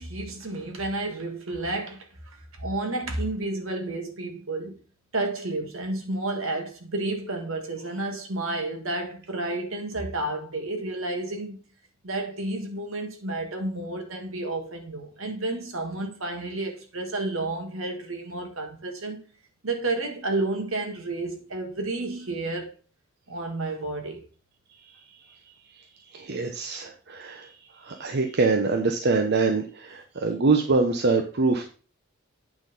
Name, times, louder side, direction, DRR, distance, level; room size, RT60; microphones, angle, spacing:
voice 1, 0.0-2.1 2.6-4.8 5.1-11.6 12.0-19.2 19.6-22.7 23.3-24.2, right 2 dB, 75° right, 1.8 m, -31 dB
voice 2, 26.1-31.6, right 3 dB, 55° right, 0.8 m, -24 dB
8.9 x 4.0 x 5.2 m
head